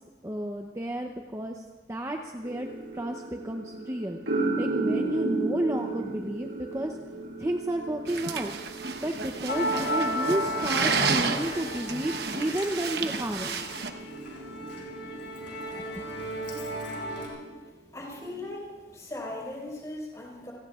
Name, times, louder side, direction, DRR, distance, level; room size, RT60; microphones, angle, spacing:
voice 1, 0.2-2.7 2.9-4.2 4.6-7.0 7.4-8.5 9.0-13.6 15.8-15.9, right 1 dB, 15° right, 2 dB, 0.7 m, -32 dB
sound 1, 2.4-17.6 18.2-18.5, right 2 dB, 80° right, 5.4 m, -36 dB
sound 2, 8.1-13.9, right 5 dB, 60° right, 1.0 m, -31 dB
Musical instrument, 9.5-17.3, equal, 75° left, 5.0 m, -34 dB
voice 2, 17.9-20.5, left 1 dB, 20° left, -3 dB, 4.6 m, -38 dB
29.5 x 18.0 x 2.4 m, 1.2 s
head